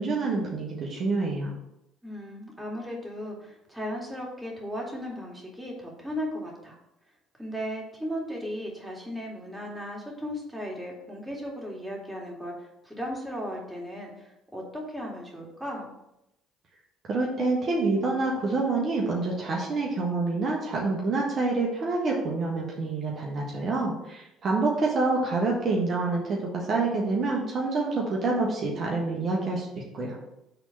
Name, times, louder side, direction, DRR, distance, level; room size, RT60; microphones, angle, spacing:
voice 1, 0.0-1.5 17.1-30.1, right 3 dB, 50° right, -2 dB, 1.4 m, -27 dB
voice 2, 2.0-6.8 7.4-15.9, equal, 5° right, -2 dB, 2.3 m, -36 dB
5.8 x 3.7 x 5.8 m, 0.86 s
hypercardioid pair, 65°, 0 cm